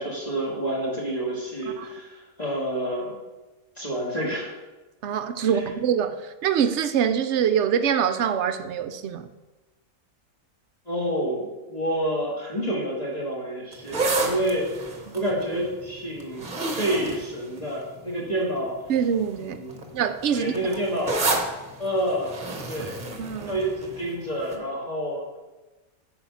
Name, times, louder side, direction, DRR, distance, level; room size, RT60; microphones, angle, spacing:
voice 1, 0.0-3.2 3.8-4.5 5.4-5.6 10.9-18.7 19.4-19.9 20.3-21.3 21.8-22.3 22.7-23.0 23.5-25.4, right 1 dB, 25° left, 1.8 m, -29 dB
voice 2, 5.0-9.3 15.1-15.2 18.9-19.6 19.9-20.7 23.2-23.6, right 8 dB, 65° right, 0.7 m, -24 dB
sound 1, 13.7-18.2 18.9-19.2 19.5-24.1 24.5-24.6, right 2 dB, 35° right, 1.1 m, -30 dB
8.8 x 4.8 x 5.7 m
omnidirectional pair, 1.5 m